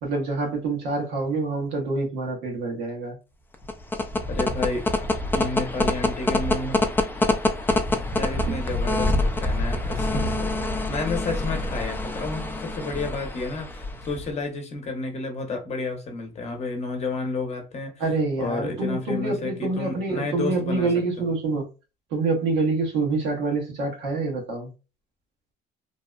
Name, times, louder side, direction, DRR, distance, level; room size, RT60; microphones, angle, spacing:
voice 1, 0.0-3.2 8.5-8.6 18.0-21.7 22.1-24.7, right 3 dB, 85° right, 1.0 m, -26 dB
sound 1, 3.5-14.3, left 2 dB, 10° left, 0.3 m, -26 dB
voice 2, 4.3-4.9 5.3-6.8 8.2-18.0 18.4-20.9 21.2-21.3, left 3 dB, 40° left, 0.7 m, -31 dB
2.7 x 2.0 x 2.3 m
cardioid pair, 110°, 17 cm